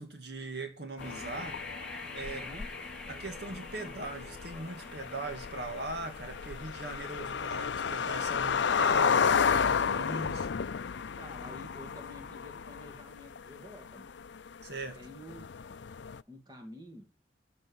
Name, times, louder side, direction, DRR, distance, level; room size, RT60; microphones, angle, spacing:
voice 1, 0.0-1.6 2.1-2.5 3.1-10.5 14.6-15.0, right 2 dB, 60° right, 2.2 m, -40 dB
sound 1, 1.0-16.2, left 6 dB, 75° left, 0.5 m, -32 dB
sound 2, 1.0-12.8, left 2 dB, 5° left, 1.7 m, -49 dB
voice 2, 2.3-2.7 10.9-14.1 14.9-15.5 16.3-17.1, left 1 dB, 20° right, 2.4 m, -50 dB
14.0 x 5.5 x 7.2 m
head